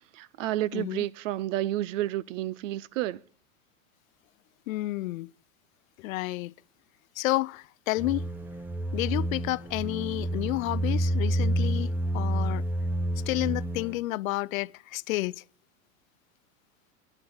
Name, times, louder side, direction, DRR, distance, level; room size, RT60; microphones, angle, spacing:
voice 1, 0.1-3.2, right 14 dB, 65° right, 0.7 m, -30 dB
voice 2, 0.7-1.1 4.7-5.3 6.0-6.5 7.2-8.3 8.9-12.6 13.3-15.4, left 19 dB, 75° left, 0.5 m, -30 dB
sound 1, 8.0-14.0, right 1 dB, 5° right, 0.6 m, -29 dB
11.0 x 7.9 x 7.7 m
supercardioid pair, 135°, 41 cm